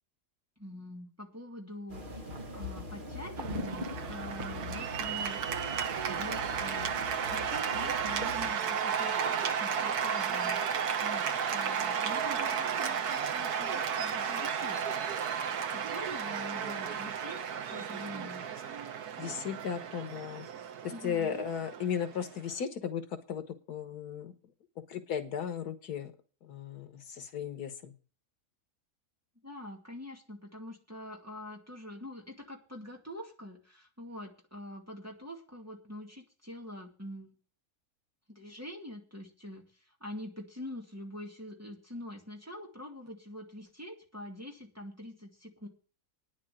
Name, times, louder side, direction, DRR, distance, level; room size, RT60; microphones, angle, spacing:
voice 1, 0.6-5.4 6.0-14.8 15.7-18.4 20.9-21.4 29.4-37.3 38.3-45.7, left 1 dB, 10° right, 0 dB, 2.2 m, -45 dB
sound 1, 1.9-8.5, left 1 dB, 35° right, 1.7 m, -41 dB
Cheering / Applause, 3.4-22.6, right 7 dB, 80° right, 1.5 m, -33 dB
voice 2, 19.2-20.5 20.8-24.4 24.8-26.1 26.4-27.9, left 8 dB, 90° left, 9 dB, 1.9 m, -36 dB
9.9 x 7.2 x 9.0 m, 0.39 s
omnidirectional pair, 1.6 m